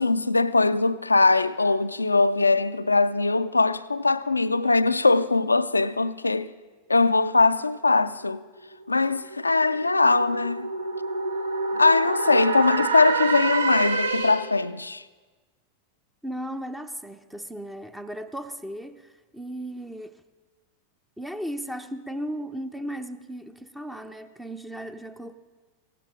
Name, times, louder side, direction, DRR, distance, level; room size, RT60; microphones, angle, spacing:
voice 1, 0.0-6.5 6.9-8.4 8.9-10.7 11.7-15.0, left 3 dB, 80° left, 0.4 m, -21 dB
sound 1, 8.5-14.6, right 3 dB, 70° right, 1.0 m, -28 dB
voice 2, 16.2-20.2 21.2-25.3, equal, 5° right, 0.6 m, -36 dB
18.5 x 16.5 x 3.8 m
figure-of-eight pair, 90°, 0 cm